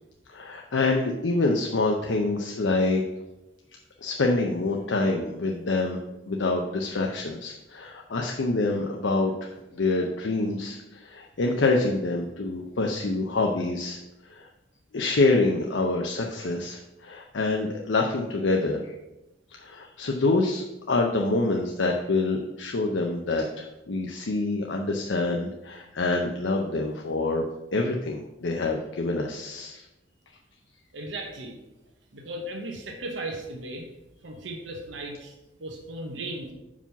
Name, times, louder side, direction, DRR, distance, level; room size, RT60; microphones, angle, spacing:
voice 1, 0.3-3.0 4.0-6.0 6.3-14.0 14.3-14.5 14.9-18.9 19.5-27.4 27.7-29.8, left 2 dB, 75° left, 1 dB, 0.6 m, -26 dB
voice 2, 30.9-31.5 32.1-33.9 34.2-35.3 35.6-36.5, right 1 dB, 80° right, 1 dB, 1.0 m, -36 dB
5.5 x 4.9 x 5.7 m, 0.96 s
head